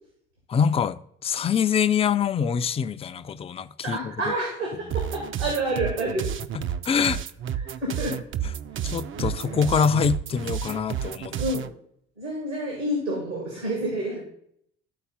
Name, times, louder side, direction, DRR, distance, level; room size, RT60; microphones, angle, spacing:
voice 1, 0.5-4.0 4.3-4.4 6.8-7.2 8.8-11.4, left 7 dB, 20° left, 0.4 m, -24 dB
voice 2, 3.8-6.4 7.5-8.2 8.7-8.9 9.2-9.6 11.4-11.7 12.2-14.2, right 1 dB, 90° right, 2.2 m, -29 dB
sound 1, 4.9-11.7, right 9 dB, 40° right, 0.5 m, -31 dB
12.0 x 4.2 x 5.3 m
figure-of-eight pair, 50°, 32 cm